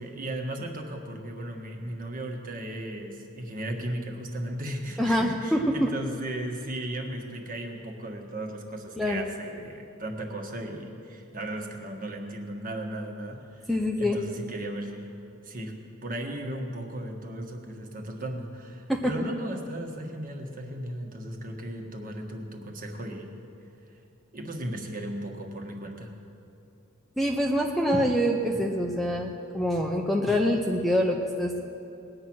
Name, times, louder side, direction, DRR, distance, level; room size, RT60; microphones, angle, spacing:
voice 1, 0.0-13.7 14.0-15.1 15.4-23.3 24.3-26.1, right 1 dB, 40° right, 2 dB, 1.5 m, -36 dB
voice 2, 5.0-5.9 9.0-9.2 13.7-14.2 18.9-19.1 27.2-31.6, equal, ahead, 1 dB, 0.7 m, -25 dB
20.0 x 8.7 x 6.2 m, 2.8 s
head